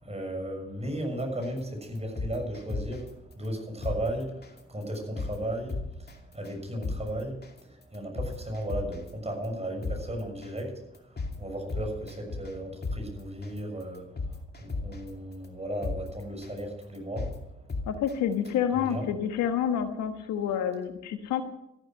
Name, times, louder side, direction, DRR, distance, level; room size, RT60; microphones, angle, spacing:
voice 1, 0.0-3.0 3.4-4.4 4.7-5.8 6.3-7.4 7.9-10.8 11.4-14.0 14.6-17.3 18.7-19.0, right 1 dB, 20° right, 2 dB, 6.7 m, -35 dB
sound 1, 1.4-1.6 2.0-3.1 3.4-3.5 3.8-4.0 4.4-4.6 4.9-5.3 5.7-6.1 6.4-6.5 6.8-7.0 7.4-7.6 7.9-9.1 9.4-9.5 9.8-10.0 10.4-10.6 10.9-11.3 11.7-12.5 12.8-13.0 13.4-13.6 13.9-15.1 15.4-15.5 15.8-16.0 16.4-16.6 16.9-17.3 17.7-18.1 18.4-18.5, left 3 dB, 35° left, 2.6 m, -33 dB
voice 2, 17.9-21.4, left 9 dB, 70° left, 8 dB, 1.4 m, -28 dB
14.0 x 12.5 x 6.4 m, 0.87 s
hypercardioid pair, 45°, 30 cm